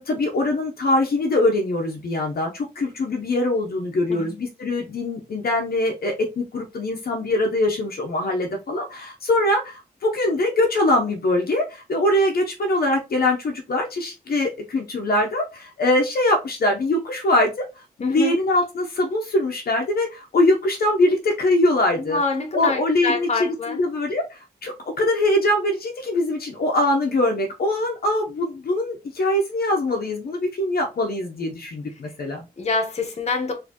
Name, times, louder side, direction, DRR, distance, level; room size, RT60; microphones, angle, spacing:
voice 1, 0.0-22.2 22.5-32.4, left 1 dB, 65° left, 0.8 m, -23 dB
voice 2, 18.0-18.4 21.9-23.8 32.0-32.1 32.6-33.5, left 3 dB, 40° left, 1.0 m, -26 dB
4.3 x 2.7 x 2.9 m
wide cardioid pair, 125°, 17 cm